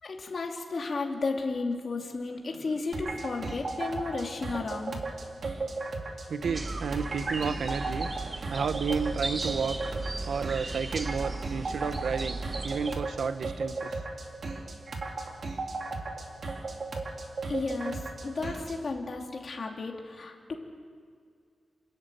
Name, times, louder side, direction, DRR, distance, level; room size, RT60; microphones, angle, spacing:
voice 1, 0.0-5.0 17.5-20.6, left 3 dB, 45° left, 1 dB, 2.7 m, -33 dB
sound 1, 2.9-18.8, right 3 dB, 45° right, 2.4 m, -36 dB
voice 2, 6.3-8.1 8.5-9.8 10.3-14.0, right 5 dB, 70° right, 12 dB, 0.7 m, -32 dB
sound 2, 6.5-13.0, right 2 dB, 25° right, 1.0 m, -36 dB
27.5 x 13.0 x 9.2 m, 2.1 s
wide cardioid pair, 175°, 0 cm